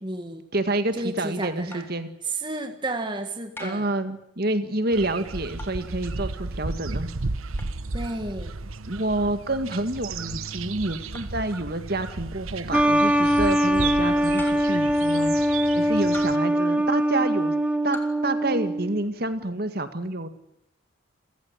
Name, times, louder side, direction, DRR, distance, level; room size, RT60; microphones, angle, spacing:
voice 1, 0.0-0.5 0.9-1.9 2.2-3.9 7.9-8.5 16.5-16.8, right 2 dB, 25° right, 6 dB, 1.8 m, -32 dB
voice 2, 0.5-2.1 3.6-7.1 8.9-17.5 17.8-20.3, right 2 dB, 50° right, 9 dB, 2.1 m, -28 dB
sound 1, 1.7-2.0 3.6-4.0 5.6-5.9 7.6-7.8 9.7-9.9 11.1-11.4 12.7-13.0 14.4-14.8 16.1-16.6 17.9-18.2, left 2 dB, 10° left, 3.1 m, -42 dB
sound 2, 4.9-16.4, right 3 dB, 90° right, 1.2 m, -34 dB
sound 3, 12.7-19.0, equal, 5° right, 1.5 m, -22 dB
29.5 x 15.5 x 9.9 m, 0.78 s
head